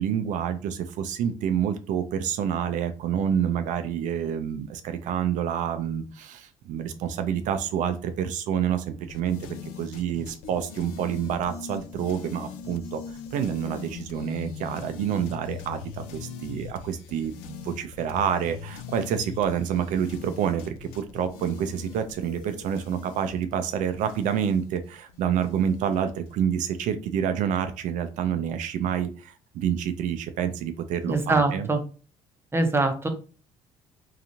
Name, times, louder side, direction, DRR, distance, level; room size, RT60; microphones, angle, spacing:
voice 1, 0.0-9.4 9.8-31.7, right 8 dB, 65° right, 9 dB, 0.4 m, -28 dB
sound 1, 9.1-26.3, left 7 dB, 80° left, 0.4 m, -41 dB
voice 2, 31.0-31.8 32.5-33.1, right 2 dB, 15° right, 6 dB, 0.7 m, -23 dB
2.8 x 2.4 x 2.7 m, 0.37 s
hypercardioid pair, 60°, 14 cm